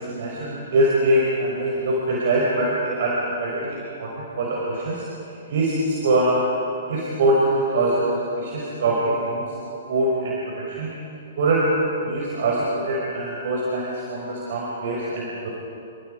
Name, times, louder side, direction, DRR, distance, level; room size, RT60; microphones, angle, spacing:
voice 1, 0.0-6.4 6.8-9.5 9.9-10.9 11.4-11.7 12.0-15.5, right 1 dB, 55° right, -4 dB, 5.7 m, -23 dB
30.0 x 26.5 x 5.3 m, 2.7 s
figure-of-eight pair, 115°, 0 cm